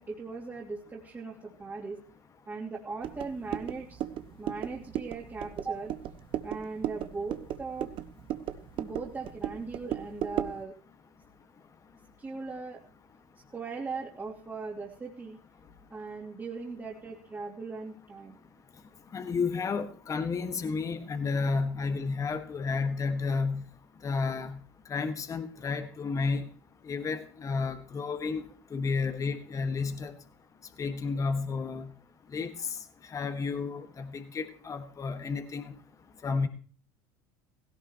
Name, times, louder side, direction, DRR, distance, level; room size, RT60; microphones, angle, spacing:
voice 1, 0.0-2.0 2.5-4.0 4.4-5.9 6.4-7.9 8.8-10.8 12.2-12.8 13.5-15.4 15.9-18.4, right 4 dB, 20° right, -6 dB, 2.9 m, -39 dB
sound 1, 3.0-10.6, right 12 dB, 50° right, 1.1 m, -36 dB
voice 2, 19.1-23.6 24.0-24.6 24.9-26.5 26.9-28.4 28.7-30.1 30.8-31.9 32.3-32.5 33.1-35.6 36.2-36.5, left 4 dB, 30° left, 8 dB, 1.6 m, -31 dB
17.0 x 16.5 x 3.0 m, 0.43 s
supercardioid pair, 95°, 11 cm